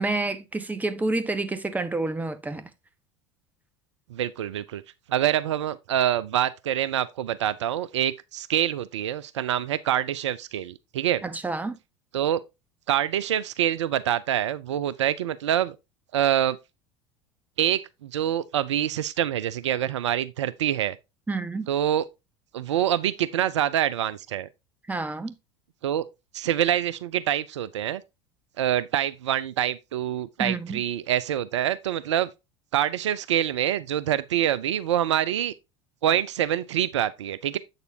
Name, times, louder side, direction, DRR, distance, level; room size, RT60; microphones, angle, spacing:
voice 1, 0.0-2.7 11.2-11.8 21.3-21.7 24.9-25.3 30.4-30.8, right 3 dB, 10° right, 1.1 m, -29 dB
voice 2, 4.1-4.8 5.1-11.2 12.1-12.4 12.9-15.8 16.1-16.6 17.6-21.0 21.7-22.0 22.5-24.5 25.8-26.1 26.3-28.0 28.6-32.3 32.7-35.5 36.0-37.6, right 11 dB, 75° right, 0.5 m, -25 dB
8.0 x 6.7 x 2.8 m
figure-of-eight pair, 75°, 15 cm